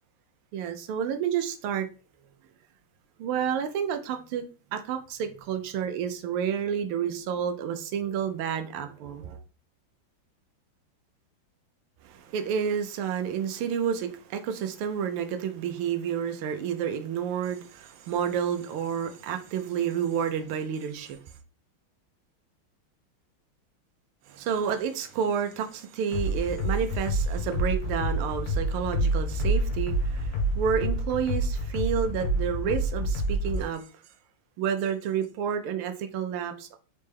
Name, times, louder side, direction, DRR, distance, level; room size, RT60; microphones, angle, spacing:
voice 1, 0.5-1.9 3.2-9.4 12.0-21.2 24.3-33.9 34.6-36.8, right 8 dB, 90° right, 7 dB, 1.5 m, -30 dB
sound 1, 26.1-33.6, right 1 dB, 90° left, 1.6 m, -28 dB
4.3 x 3.2 x 3.4 m, 0.35 s
omnidirectional pair, 2.4 m